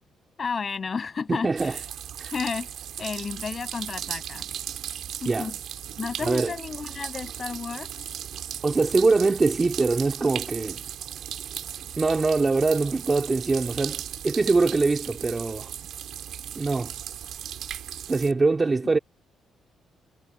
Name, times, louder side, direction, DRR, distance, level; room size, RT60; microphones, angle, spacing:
voice 1, 0.4-1.8 2.3-2.7 3.0-4.4 5.2-5.5 6.0-7.9, left 5 dB, 40° left, 5.9 m, -32 dB
voice 2, 1.3-1.8 2.2-2.3 5.2-5.5 6.2-6.5 8.6-10.8 12.0-15.7 16.5-16.9 18.1-19.0, right 3 dB, 25° right, 3.3 m, -23 dB
sound 1, 1.6-18.3, right 10 dB, 70° right, 2.4 m, -36 dB
cardioid pair, 90°, 0 cm